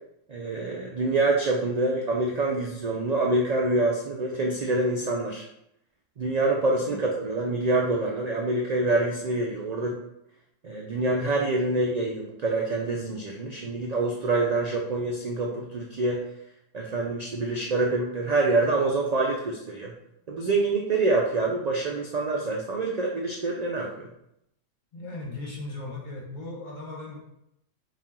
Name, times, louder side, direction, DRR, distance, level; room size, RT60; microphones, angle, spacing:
voice 1, 0.3-5.4 6.2-10.0 10.6-16.2 16.7-19.9 20.3-24.1, right 2 dB, 80° right, -1 dB, 0.3 m, -26 dB
voice 2, 24.9-27.2, left 2 dB, 40° left, -2 dB, 1.0 m, -37 dB
4.3 x 2.4 x 3.6 m, 0.79 s
omnidirectional pair, 1.3 m